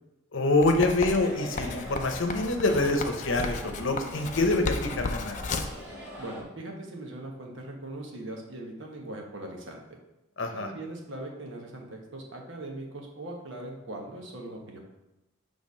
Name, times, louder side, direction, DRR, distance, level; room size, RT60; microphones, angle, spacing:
voice 1, 0.3-5.4 10.4-10.7, left 2 dB, 75° left, 5 dB, 0.8 m, -26 dB
Writing, 0.6-5.8, left 3 dB, 35° left, 0.5 m, -34 dB
sound 1, 1.1-6.4, left 1 dB, 10° right, 1.7 m, -42 dB
voice 2, 6.2-9.8 10.5-14.8, right 1 dB, 70° right, 1 dB, 1.2 m, -40 dB
6.5 x 3.4 x 5.3 m, 0.96 s
head